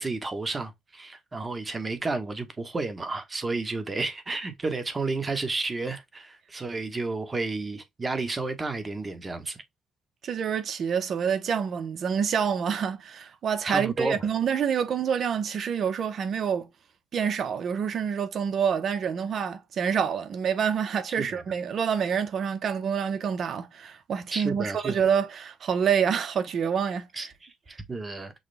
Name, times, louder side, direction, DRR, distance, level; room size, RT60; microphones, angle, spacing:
voice 1, 0.0-9.6 13.7-14.2 21.2-21.4 24.3-25.0 27.1-28.3, right 3 dB, 25° right, 1.2 m, -32 dB
voice 2, 10.2-16.7 17.1-27.3, right 7 dB, 60° right, 0.9 m, -27 dB
6.5 x 2.3 x 3.3 m
cardioid pair, 90°, 0 cm